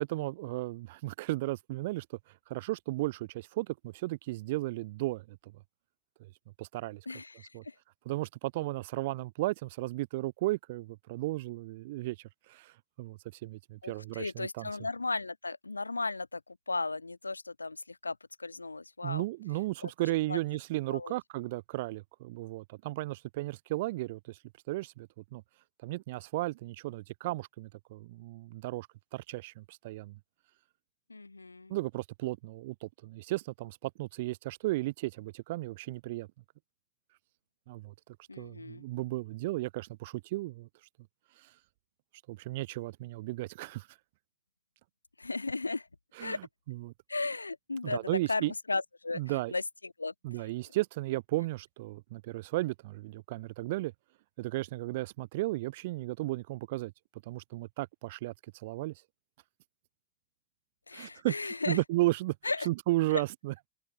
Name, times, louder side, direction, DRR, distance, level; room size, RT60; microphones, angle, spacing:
voice 1, 0.0-2.1 2.5-5.4 6.2-6.3 6.6-7.0 7.5-7.6 8.1-12.2 12.5-12.7 13.0-14.7 19.0-24.4 24.7-25.4 25.8-28.9 29.1-30.2 31.7-36.3 37.7-37.9 38.4-40.7 42.3-43.9 46.2-46.9 47.8-48.5 49.1-49.5 50.2-53.9 54.4-56.9 57.3-58.9 60.9-61.3 61.7-62.4 62.6-63.7, right 19 dB, 50° right, 0.6 m, -34 dB
voice 2, 7.1-7.7 13.8-19.2 19.8-20.4 20.9-21.1 31.1-31.7 38.3-38.8 45.2-45.9 46.2-46.4 47.1-49.2 49.5-50.1 50.4-50.5 60.9-61.8 62.4-62.7 63.1-63.2, left 3 dB, 80° left, 0.6 m, -36 dB
open air
figure-of-eight pair, 90°, 0 cm